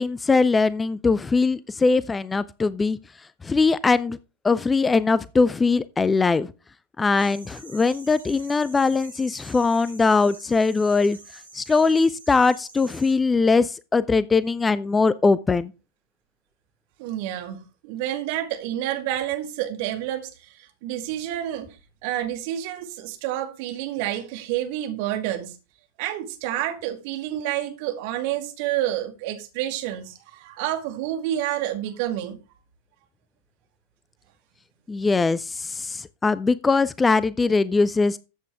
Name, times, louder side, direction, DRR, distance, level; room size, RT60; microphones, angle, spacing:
voice 1, 0.0-3.0 3.4-4.2 4.4-6.5 7.0-11.2 11.5-15.7 34.9-38.2, left 4 dB, 15° left, 0.4 m, -21 dB
sound 1, 7.2-13.1, right 3 dB, 75° right, 3.4 m, -46 dB
voice 2, 17.0-21.8 22.0-25.6 26.0-32.4, right 12 dB, 45° right, 2.0 m, -29 dB
13.5 x 8.3 x 3.4 m
figure-of-eight pair, 90°, 0 cm